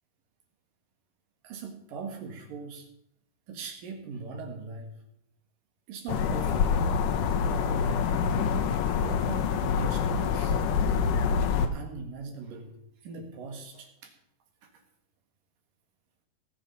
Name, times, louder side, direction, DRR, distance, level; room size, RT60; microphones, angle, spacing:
voice 1, 1.4-2.9 3.5-5.0 5.9-6.8 7.4-7.9 8.7-10.6 11.7-12.8 13.0-14.1 14.6-14.8, right 4 dB, 80° right, 4 dB, 3.5 m, -41 dB
sound 1, 6.1-11.7, left 6 dB, 75° left, 2.5 m, -26 dB
18.0 x 7.2 x 5.5 m, 0.76 s
omnidirectional pair, 3.8 m